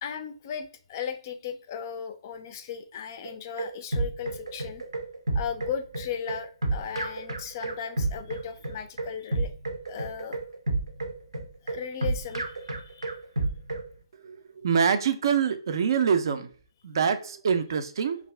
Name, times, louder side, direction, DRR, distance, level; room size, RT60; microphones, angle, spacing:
voice 1, 0.0-4.8 5.3-9.5 9.9-10.4 11.6-13.1, left 8 dB, 35° left, 9 dB, 0.4 m, -36 dB
sound 1, 3.2-13.9, right 2 dB, 85° right, 0.7 m, -30 dB
voice 2, 14.6-16.5 16.8-18.2, right 6 dB, 55° right, 9 dB, 0.4 m, -25 dB
2.6 x 2.4 x 3.2 m, 0.41 s
figure-of-eight pair, 140°, 3 cm